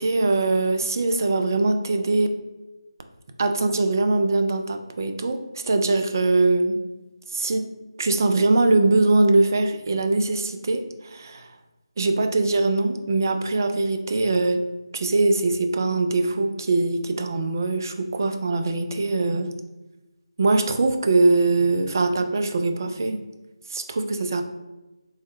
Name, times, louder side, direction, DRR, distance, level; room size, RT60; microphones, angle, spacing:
voice 1, 0.0-2.3 3.4-5.4 5.6-6.8 7.3-7.7 8.0-11.5 12.0-14.6 14.9-19.5 20.4-23.2 23.7-24.4, right 2 dB, 40° right, 7 dB, 0.3 m, -22 dB
3.4 x 2.0 x 3.5 m, 1.1 s
figure-of-eight pair, 160°, 3 cm